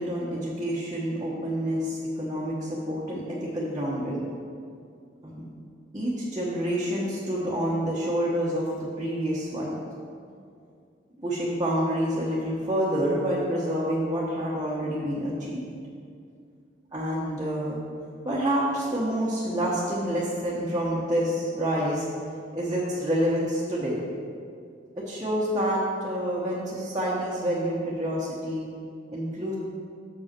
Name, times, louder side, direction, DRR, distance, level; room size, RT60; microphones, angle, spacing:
voice 1, 0.0-4.3 5.2-5.4 5.9-9.8 11.2-15.7 16.9-17.8 18.2-22.1 22.5-24.0 24.9-28.7 29.1-29.5, equal, 20° right, -8 dB, 1.1 m, -28 dB
7.1 x 5.4 x 6.0 m, 2.3 s
head